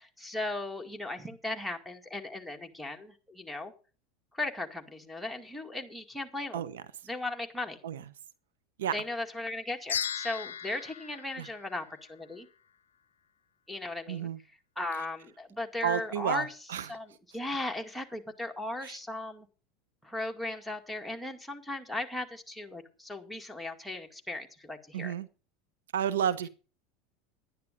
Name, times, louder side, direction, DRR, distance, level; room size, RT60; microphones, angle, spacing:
voice 1, 0.2-3.7 4.3-6.7 7.1-7.8 8.9-12.5 13.7-14.3 14.8-16.5 16.9-19.5 20.0-25.1, left 2 dB, ahead, 2.1 m, -37 dB
voice 2, 6.5-6.8 7.8-8.0 8.8-9.0 11.4-11.5 14.1-14.4 15.8-16.9 18.8-19.0 24.9-25.3 25.9-26.5, right 9 dB, 80° right, 0.9 m, -31 dB
sound 1, 9.9-12.4, left 8 dB, 85° left, 0.5 m, -37 dB
11.5 x 10.5 x 5.2 m
hypercardioid pair, 90°, 0 cm